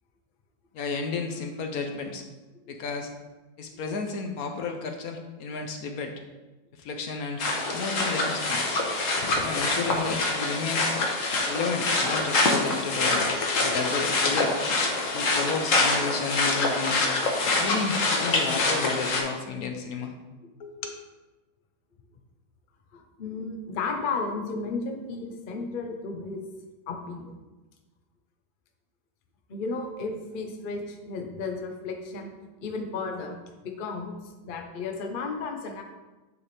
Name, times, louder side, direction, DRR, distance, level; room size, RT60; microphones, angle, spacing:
voice 1, 0.7-2.2 2.7-3.1 3.6-6.1 6.7-7.4 7.7-8.8 9.4-11.0 11.5-13.3 13.6-14.6 15.1-17.1 17.6-20.1 20.6-21.0, left 4 dB, 65° left, 5 dB, 0.9 m, -32 dB
sound 1, 7.4-19.2, left 2 dB, 50° left, 1.2 m, -25 dB
voice 2, 22.9-26.4 26.9-27.3 29.5-32.3 32.6-35.8, left 4 dB, 85° left, 3 dB, 0.4 m, -34 dB
9.7 x 3.4 x 4.2 m, 1.1 s
omnidirectional pair, 2.1 m